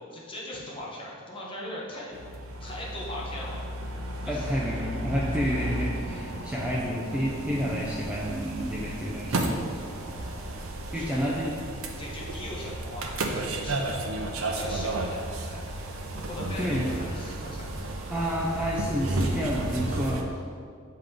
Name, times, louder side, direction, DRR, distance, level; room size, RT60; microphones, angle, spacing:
voice 1, 0.0-2.2 2.6-3.6 4.2-4.6 6.3-6.6 10.0-11.3 12.0-14.0 14.5-15.8 16.1-17.8, left 1 dB, 25° left, -5 dB, 1.0 m, -40 dB
sound 1, 2.1-20.2, right 2 dB, 70° right, 0.6 m, -33 dB
voice 2, 4.3-9.5 10.9-11.5 16.6-16.9 18.1-20.3, equal, 5° right, -5 dB, 0.4 m, -29 dB
7.5 x 3.7 x 3.4 m, 2.2 s
head